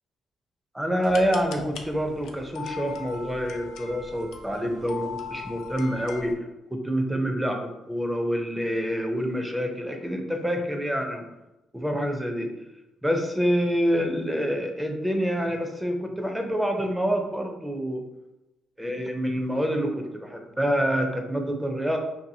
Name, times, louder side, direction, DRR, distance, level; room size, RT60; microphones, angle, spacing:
voice 1, 0.7-6.3 6.7-11.2 11.7-12.5 13.0-18.0 18.8-22.0, equal, 5° right, 3 dB, 0.5 m, -27 dB
sound 1, 1.0-6.3, left 6 dB, 80° left, 0.3 m, -40 dB
2.7 x 2.5 x 2.7 m, 0.96 s
cardioid pair, 90°, 0 cm